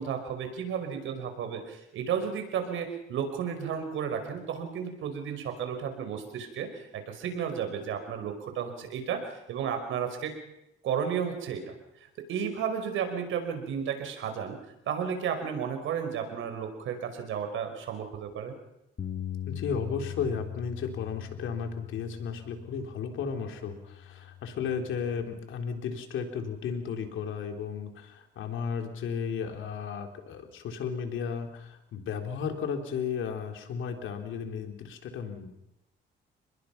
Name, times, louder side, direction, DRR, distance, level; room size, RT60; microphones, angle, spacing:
voice 1, 0.0-9.2 9.5-10.3 10.8-11.7 12.3-14.6 14.9-18.5, right 7 dB, 80° right, 6 dB, 5.3 m, -33 dB
Bass guitar, 19.0-25.2, left 11 dB, 45° left, 2.2 m, -41 dB
voice 2, 19.5-35.6, left 6 dB, 80° left, 5 dB, 3.7 m, -34 dB
29.5 x 20.5 x 6.0 m, 0.84 s
cardioid pair, 90°, 20 cm